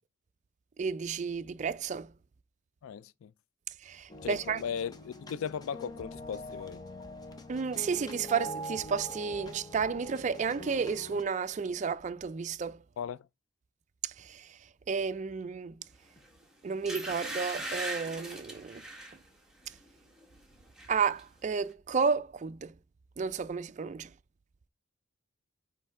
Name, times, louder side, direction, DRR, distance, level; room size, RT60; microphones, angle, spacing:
voice 1, 0.8-2.1 3.8-4.6 7.5-12.8 14.0-14.6 14.9-15.8 16.6-18.8 20.9-22.7 23.2-24.1, right 5 dB, 35° right, 0.4 m, -32 dB
voice 2, 2.8-3.3 4.2-6.8 13.0-13.3, left 7 dB, 90° left, 0.3 m, -37 dB
sound 1, 4.1-11.2, equal, 20° left, 0.7 m, -44 dB
sound 2, 16.2-16.3 16.9-19.2 19.6-19.9 20.2-20.9 21.2-21.3, right 1 dB, 5° right, 1.4 m, -39 dB
8.9 x 3.3 x 3.6 m
head